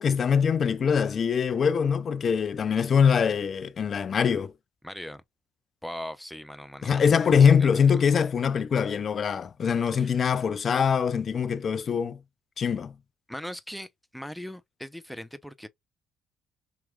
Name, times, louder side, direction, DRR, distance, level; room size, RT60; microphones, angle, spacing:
voice 1, 0.0-4.5 6.8-12.2 12.6-12.9, left 6 dB, 50° left, 0.5 m, -23 dB
voice 2, 4.8-5.2 5.8-8.0 9.9-10.2 13.3-15.7, equal, ahead, 0.7 m, -40 dB
4.9 x 2.9 x 2.3 m
hypercardioid pair, 55°, 0 cm